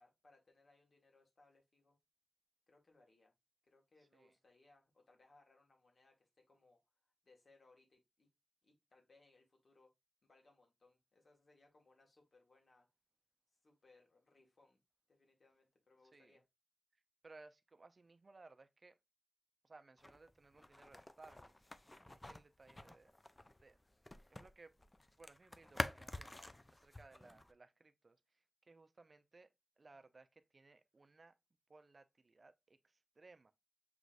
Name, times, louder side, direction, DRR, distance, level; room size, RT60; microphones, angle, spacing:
voice 1, 0.0-2.0 2.7-3.3 3.6-8.3 8.6-9.9 10.2-12.9 13.6-14.8 15.1-16.4, left 3 dB, 60° left, 1.6 m, -70 dB
voice 2, 16.9-19.0 19.6-21.5 22.1-23.1 23.6-23.8 24.3-24.7 25.2-31.3 31.7-33.5, right 3 dB, 50° right, 0.5 m, -62 dB
sound 1, 20.0-24.5 24.8-27.5, left 1 dB, 25° left, 0.4 m, -47 dB
6.0 x 3.1 x 2.5 m
cardioid pair, 60°, 0 cm